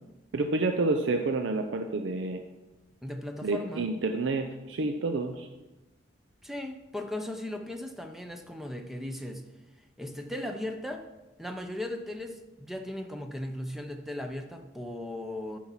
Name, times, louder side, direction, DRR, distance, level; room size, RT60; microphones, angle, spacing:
voice 1, 0.3-2.4 3.4-5.5, right 3 dB, 85° right, 5 dB, 0.6 m, -29 dB
voice 2, 3.0-3.9 6.4-9.4 10.0-11.0 11.4-15.6, left 1 dB, ahead, 5 dB, 0.6 m, -37 dB
9.5 x 4.7 x 5.6 m, 1.1 s
head